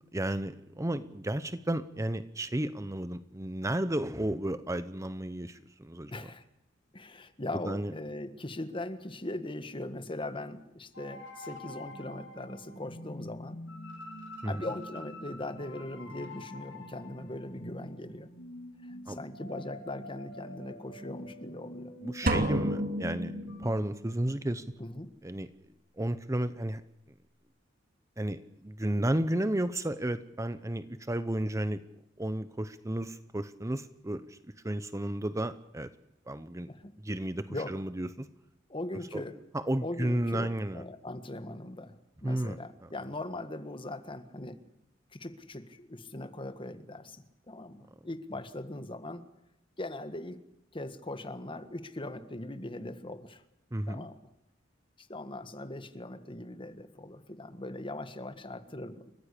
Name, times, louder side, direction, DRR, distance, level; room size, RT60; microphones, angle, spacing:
voice 1, 0.1-6.3 7.6-7.9 14.4-14.5 19.1-19.2 22.0-23.3 23.6-24.6 25.2-25.5 26.0-26.8 28.2-31.8 32.2-34.4 34.6-35.9 36.3-36.7 37.0-38.3 39.1-39.2 39.5-40.8 42.2-42.9 53.7-54.1, right 1 dB, 15° right, 12 dB, 0.8 m, -33 dB
voice 2, 6.1-6.4 6.9-13.6 14.4-18.3 18.9-21.9 22.2-22.6 24.8-25.1 36.7-36.9 37.5-37.8 38.7-39.4 39.8-41.9 42.2-44.6 45.1-49.3 49.8-50.4 50.7-53.4 53.9-54.2 55.0-59.1, left 1 dB, 25° left, 10 dB, 1.6 m, -40 dB
sound 1, 10.9-23.7, left 1 dB, 80° left, 6.2 m, -46 dB
sound 2, 22.3-24.1, right 1 dB, 50° right, 2.9 m, -30 dB
29.5 x 15.0 x 8.4 m, 0.86 s
head